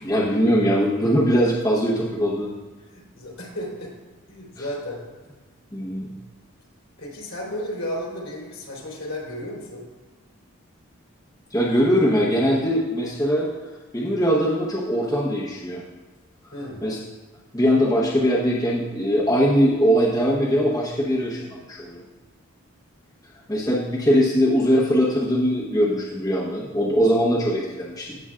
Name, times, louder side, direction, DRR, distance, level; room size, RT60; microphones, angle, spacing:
voice 1, 0.0-2.5 4.6-4.7 5.7-6.1 11.5-13.5 13.9-15.8 16.8-17.0 17.5-22.0 23.5-28.2, equal, 15° left, -6 dB, 1.0 m, -21 dB
voice 2, 2.8-3.9 4.3-5.0 7.0-9.9 16.5-16.9, equal, 65° left, -5 dB, 3.3 m, -33 dB
16.0 x 6.9 x 2.5 m, 1.2 s
head